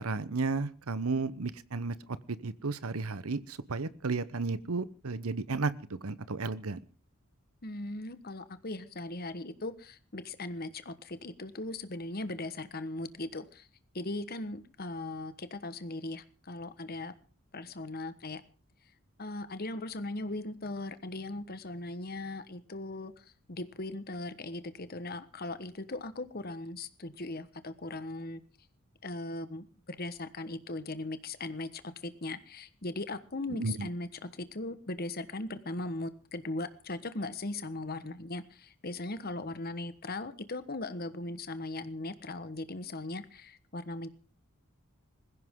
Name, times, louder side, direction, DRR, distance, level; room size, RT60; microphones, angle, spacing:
voice 1, 0.0-6.8 33.5-33.9, right 3 dB, 85° right, 16 dB, 0.9 m, -33 dB
voice 2, 7.6-13.7 13.9-17.1 17.5-18.4 19.2-28.4 29.0-44.1, left 2 dB, 45° left, 12 dB, 1.3 m, -39 dB
20.5 x 16.0 x 3.8 m, 0.38 s
head